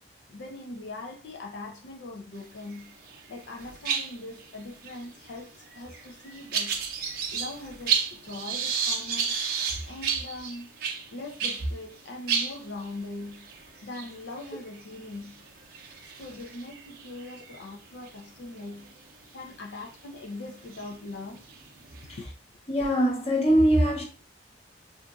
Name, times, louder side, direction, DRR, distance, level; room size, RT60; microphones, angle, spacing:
voice 1, 0.3-2.9 3.3-6.8 7.3-9.3 9.9-10.7 11.1-13.5 13.8-15.4 16.2-18.9 19.3-21.4 22.2-22.3, left 2 dB, 70° left, 0.5 m, -41 dB
sound 1, 2.7-3.2 3.5-11.7 12.0-12.1 12.3-18.1 18.7-18.9 19.8-19.9 20.5-22.2, right 7 dB, 50° right, 0.6 m, -32 dB
voice 2, 22.7-24.0, equal, 30° left, 0.8 m, -22 dB
3.8 x 2.5 x 2.3 m
head